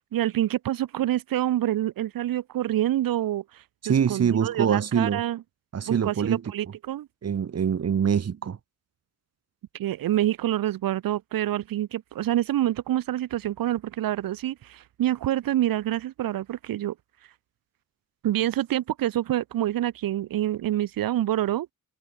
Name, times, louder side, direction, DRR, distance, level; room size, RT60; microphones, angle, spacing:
voice 1, 0.1-3.6 4.1-5.4 5.9-7.1 9.7-16.9 18.2-21.7, right 13 dB, 85° right, 5.3 m, -27 dB
voice 2, 3.8-5.2 5.7-6.4 7.2-8.6, right 7 dB, 50° right, 6.0 m, -24 dB
cardioid pair, 125°, 33 cm